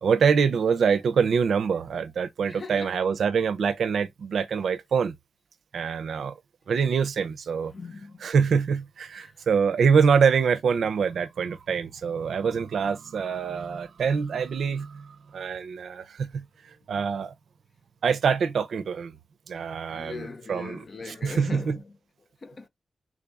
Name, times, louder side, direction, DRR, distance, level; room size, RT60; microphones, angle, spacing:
voice 1, 0.0-5.1 5.7-6.4 6.7-7.7 8.2-16.4 16.9-17.3 18.0-19.1 19.5-20.8 21.2-21.8, right 6 dB, 90° right, 0.4 m, -25 dB
voice 2, 2.5-3.0 7.7-8.2 9.1-9.5 10.1-10.2 19.9-22.0 22.4-22.7, left 4 dB, 40° left, 0.6 m, -40 dB
3.7 x 2.3 x 3.9 m
wide cardioid pair, 135°, 0 cm